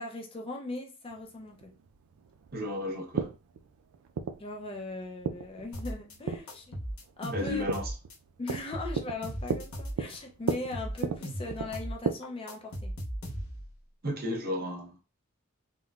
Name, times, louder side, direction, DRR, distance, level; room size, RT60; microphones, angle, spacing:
voice 1, 0.0-1.7 4.4-6.8 7.2-7.6 8.4-12.9, left 2 dB, 25° left, 0.4 m, -39 dB
sound 1, 1.1-12.1, right 5 dB, 85° right, 0.4 m, -36 dB
voice 2, 2.5-3.3 7.3-7.9 14.0-15.0, left 1 dB, 45° right, 0.8 m, -33 dB
sound 2, 5.7-6.1 6.5-8.1 8.5-10.1 10.5-12.0 12.2-13.7, equal, 85° left, 0.8 m, -37 dB
3.7 x 2.0 x 2.3 m
head